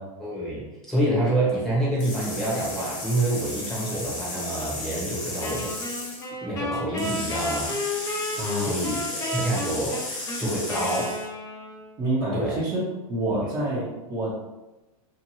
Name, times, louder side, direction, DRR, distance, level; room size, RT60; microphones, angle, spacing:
voice 1, 0.2-6.1 6.4-7.8 8.6-10.1 10.4-11.2 12.3-12.6, right 1 dB, 5° left, -7 dB, 0.9 m, -27 dB
sound 1, 2.0-6.3 7.0-11.3, left 2 dB, 40° left, 1.2 m, -34 dB
Wind instrument woodwind instrument, 5.4-12.0, left 1 dB, 20° left, 0.5 m, -32 dB
voice 2, 8.4-8.8 12.0-14.3, right 1 dB, 20° right, -7 dB, 0.7 m, -28 dB
2.9 x 2.5 x 2.7 m, 1.0 s
supercardioid pair, 140°, 18 cm